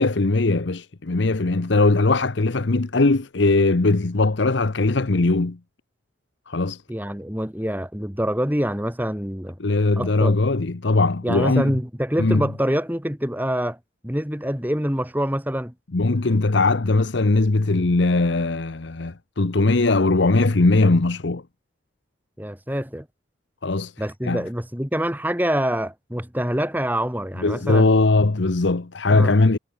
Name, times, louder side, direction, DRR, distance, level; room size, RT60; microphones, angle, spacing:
voice 1, 0.0-5.6 6.5-6.8 9.6-11.7 12.2-12.5 15.9-21.4 23.6-23.9 24.2-24.4 27.4-29.6, left 3 dB, 65° left, 0.9 m, -20 dB
voice 2, 6.9-9.6 10.0-10.3 11.2-13.8 14.0-15.7 22.4-23.1 24.0-27.9 29.1-29.3, equal, 10° right, 3.0 m, -25 dB
head